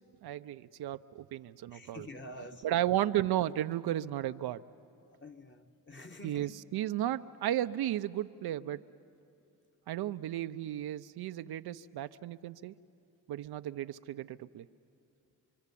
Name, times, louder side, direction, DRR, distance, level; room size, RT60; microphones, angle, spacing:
voice 1, 0.2-2.1 2.6-4.6 6.2-8.8 9.9-12.7 13.3-14.7, right 12 dB, 65° right, 11 dB, 0.6 m, -34 dB
voice 2, 1.7-2.8 5.1-6.5 6.7-6.8, left 1 dB, 25° left, 5 dB, 1.7 m, -48 dB
26.0 x 23.5 x 8.4 m, 2.6 s
supercardioid pair, 50°, 41 cm